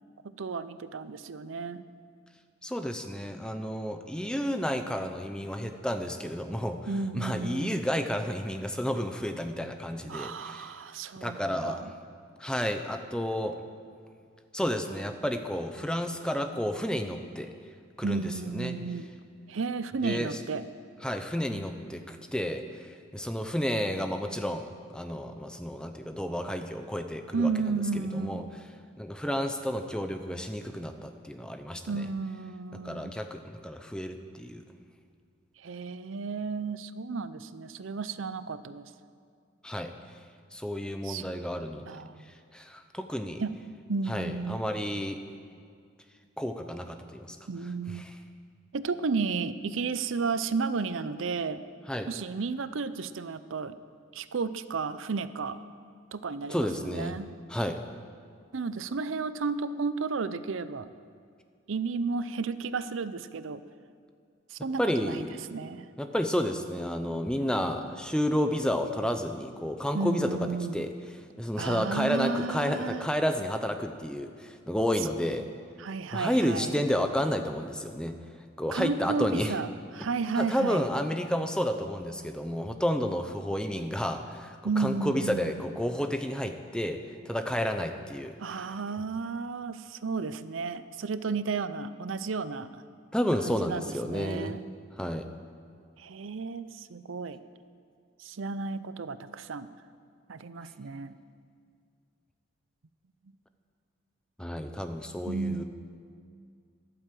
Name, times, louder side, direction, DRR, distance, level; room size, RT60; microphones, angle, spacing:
voice 1, 0.2-1.8 6.9-7.8 10.1-11.9 18.0-19.1 19.5-20.6 27.3-28.5 31.9-33.1 35.6-38.9 41.0-41.2 41.9-42.3 43.4-43.5 43.9-44.7 47.5-48.0 48.7-51.6 52.1-53.8 54.1-55.6 56.1-57.3 58.5-60.9 61.7-63.6 64.5-65.3 65.5-65.9 69.9-70.8 71.6-73.1 75.8-76.8 78.7-79.7 79.9-80.9 84.6-85.5 88.4-92.8 93.4-94.6 96.0-97.4 98.2-99.7 100.3-101.1 105.3-105.6, right 4 dB, 80° right, 14 dB, 0.6 m, -33 dB
voice 2, 2.6-6.8 7.1-10.7 11.2-11.9 12.4-13.6 14.5-17.5 18.0-18.7 20.0-20.4 21.0-27.5 27.9-28.5 29.0-32.1 32.7-34.6 39.6-40.2 40.5-41.9 42.3-43.4 44.1-45.2 46.4-47.4 47.9-48.2 51.9-52.1 56.5-57.2 57.5-57.8 64.8-65.3 66.0-70.9 71.4-75.5 76.1-78.2 78.6-79.6 80.3-88.4 93.1-94.6 95.0-95.3 104.4-105.6, equal, 5° left, 6 dB, 0.7 m, -31 dB
13.5 x 12.0 x 7.7 m, 2.2 s
head